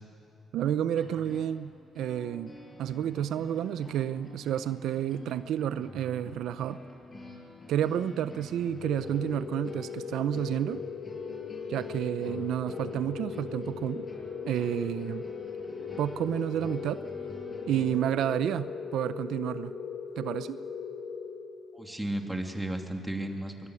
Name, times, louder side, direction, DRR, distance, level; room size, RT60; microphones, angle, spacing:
voice 1, 0.5-1.7 2.0-2.5 2.8-6.8 7.7-10.8 11.7-14.1 14.4-15.2 16.0-17.0 17.7-19.7 20.2-20.6, right 10 dB, 80° right, 13 dB, 0.6 m, -30 dB
sound 1, 0.9-18.5, left 1 dB, 30° left, 7.1 m, -49 dB
sound 2, 8.8-22.0, left 6 dB, 85° left, 2.0 m, -39 dB
voice 2, 21.7-23.7, right 1 dB, 10° right, 3 dB, 2.9 m, -34 dB
24.0 x 21.0 x 9.7 m, 3.0 s
cardioid pair, 90°, 0 cm